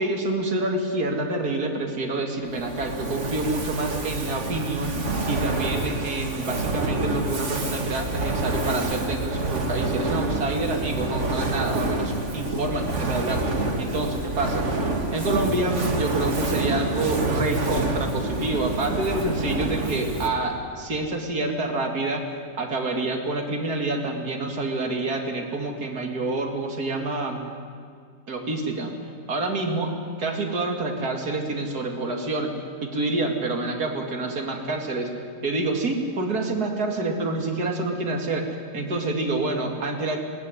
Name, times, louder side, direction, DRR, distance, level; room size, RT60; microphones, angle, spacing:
voice 1, 0.0-4.9 5.3-13.4 13.8-14.7 15.1-22.2 22.6-27.5 28.3-28.9 29.3-29.9 30.2-32.5 32.8-35.1 35.4-38.5 38.7-40.2, right 2 dB, 90° right, 3 dB, 3.0 m, -27 dB
Fire, 2.5-20.5, right 2 dB, 50° right, 2.3 m, -27 dB
20.5 x 18.5 x 9.9 m, 2.1 s
omnidirectional pair, 1.6 m